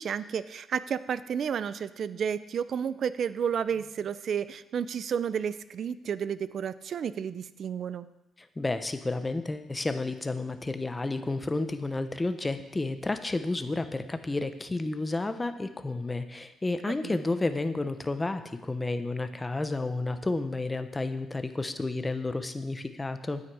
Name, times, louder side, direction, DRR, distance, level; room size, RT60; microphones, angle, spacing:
voice 1, 0.0-8.1 17.0-17.2, right 7 dB, 60° right, 15 dB, 0.5 m, -31 dB
voice 2, 8.4-23.4, left 2 dB, 20° left, 9 dB, 0.8 m, -31 dB
9.5 x 8.9 x 4.8 m, 0.96 s
cardioid pair, 90°, 0 cm